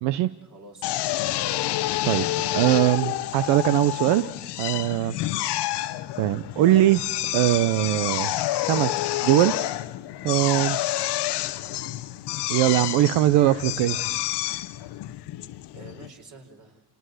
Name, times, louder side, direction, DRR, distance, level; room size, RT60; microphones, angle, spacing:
voice 1, 0.4-1.6 4.9-5.3 15.7-16.8, right 3 dB, 45° right, 4 dB, 4.3 m, -49 dB
Drill, 0.8-16.1, left 15 dB, 75° left, 0.9 m, -29 dB
voice 2, 2.5-4.3 4.6-5.2 6.2-7.0 7.3-9.5 10.2-10.8 12.5-14.0, right 14 dB, 80° right, 13 dB, 0.7 m, -21 dB
28.0 x 19.0 x 6.4 m, 0.97 s
supercardioid pair, 80°, 41 cm